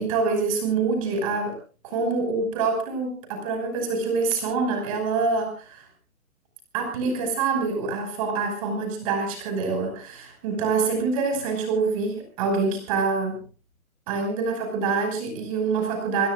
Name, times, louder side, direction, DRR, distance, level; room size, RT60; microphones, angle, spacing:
voice 1, 0.0-1.6 1.8-5.8 6.7-13.4 14.1-16.3, right 4 dB, 25° right, 5 dB, 5.7 m, -26 dB
27.0 x 21.0 x 2.5 m, 0.34 s
hypercardioid pair, 170°, 43 cm